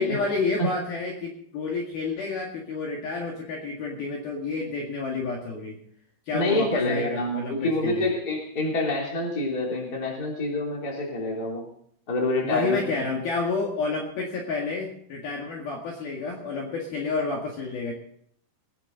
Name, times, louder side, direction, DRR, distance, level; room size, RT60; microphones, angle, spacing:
voice 1, 0.0-5.8 6.3-8.1 12.4-17.9, left 4 dB, 55° left, -2 dB, 3.3 m, -29 dB
voice 2, 6.3-11.6 12.1-12.8, left 1 dB, 20° left, -1 dB, 3.1 m, -27 dB
22.5 x 10.5 x 4.0 m, 0.65 s
omnidirectional pair, 5.8 m